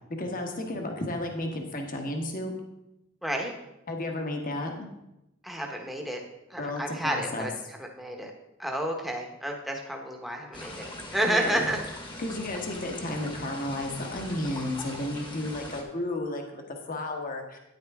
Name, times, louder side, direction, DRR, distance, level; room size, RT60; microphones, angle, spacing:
voice 1, 0.1-2.5 3.9-4.9 6.6-7.5 11.3-11.7 12.2-17.6, left 1 dB, 40° left, 3 dB, 1.3 m, -33 dB
voice 2, 3.2-3.5 5.4-6.2 6.5-8.3 8.6-10.9 11.1-11.8, right 1 dB, ahead, 1 dB, 1.0 m, -30 dB
sound 1, 10.5-15.8, left 1 dB, 25° left, 1.3 m, -41 dB
9.6 x 9.1 x 3.5 m, 0.91 s
head